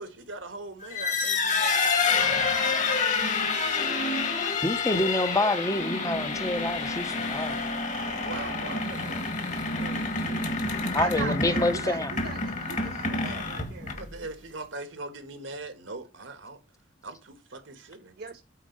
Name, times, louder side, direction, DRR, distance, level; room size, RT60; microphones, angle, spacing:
voice 1, 0.0-2.1 8.2-10.5 13.9-16.6 17.0-18.2, right 2 dB, 80° right, 1.5 m, -41 dB
sound 1, 0.8-14.2, left 4 dB, 40° left, 1.4 m, -28 dB
voice 2, 4.6-7.6 10.9-12.1, left 1 dB, 15° left, 0.7 m, -27 dB
voice 3, 7.1-8.6 11.0-13.9 18.2-18.4, right 6 dB, 50° right, 0.5 m, -39 dB
8.7 x 4.1 x 5.3 m
head